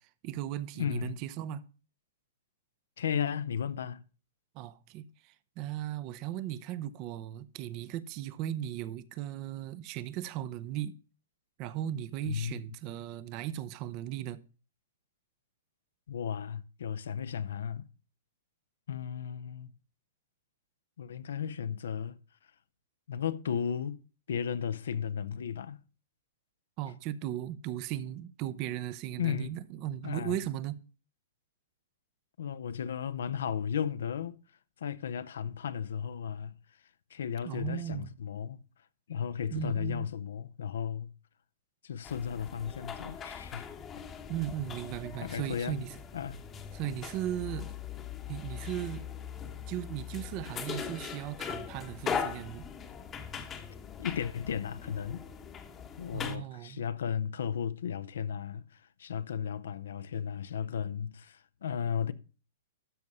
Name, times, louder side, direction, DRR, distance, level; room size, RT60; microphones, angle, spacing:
voice 1, 0.2-1.6 4.5-11.0 11.6-14.4 26.8-30.8 37.4-38.1 39.5-40.1 44.3-45.9 46.7-47.8 48.3-49.1 49.7-52.7 56.1-56.8, right 12 dB, 35° right, 0.6 m, -37 dB
voice 2, 0.7-1.2 3.0-4.0 12.2-12.6 16.1-17.9 18.9-19.7 21.0-22.2 23.1-24.0 24.3-25.8 29.2-29.5 30.0-30.4 32.4-34.4 34.8-36.6 37.1-38.6 39.1-41.1 41.8-43.7 45.2-45.8 46.1-46.4 54.0-55.3 56.0-62.1, left 8 dB, 75° left, 0.6 m, -34 dB
sound 1, 42.0-56.4, left 7 dB, 20° left, 1.0 m, -40 dB
12.5 x 4.8 x 5.4 m
hypercardioid pair, 145°, 0 cm